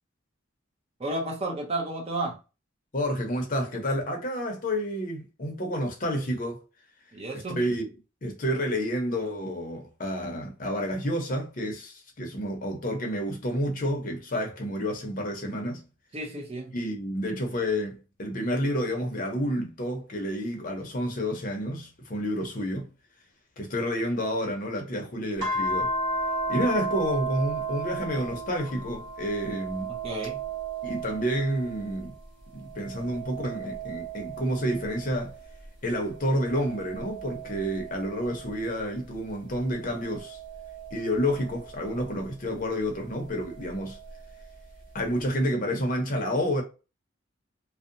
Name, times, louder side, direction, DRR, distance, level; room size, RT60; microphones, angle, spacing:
voice 1, 1.0-2.4 7.1-7.6 16.1-16.7 29.9-30.4, right 2 dB, 30° right, 0.6 m, -32 dB
voice 2, 2.9-6.6 7.5-7.9 8.2-15.8 16.7-22.9 23.6-25.9 26.5-29.9 30.8-32.1 32.5-35.3 35.8-40.4 40.9-44.0 44.9-46.6, equal, 40° left, 0.6 m, -29 dB
sound 1, 25.4-32.1 32.6-35.5 36.1-38.8 39.6-42.0 43.4-44.5, right 2 dB, 70° right, 1.5 m, -35 dB
2.6 x 2.1 x 2.5 m
head